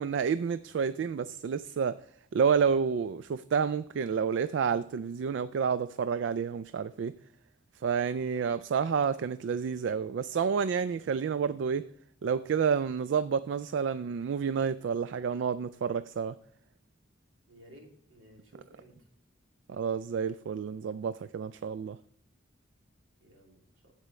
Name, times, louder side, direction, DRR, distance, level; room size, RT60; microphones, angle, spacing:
voice 1, 0.0-2.0 2.3-7.1 7.8-11.9 12.2-16.4 19.7-22.0, right 6 dB, 65° right, 14 dB, 0.3 m, -29 dB
voice 2, 17.5-18.9 23.2-23.9, equal, 80° right, 0 dB, 2.7 m, -56 dB
15.0 x 5.0 x 3.2 m, 0.68 s
head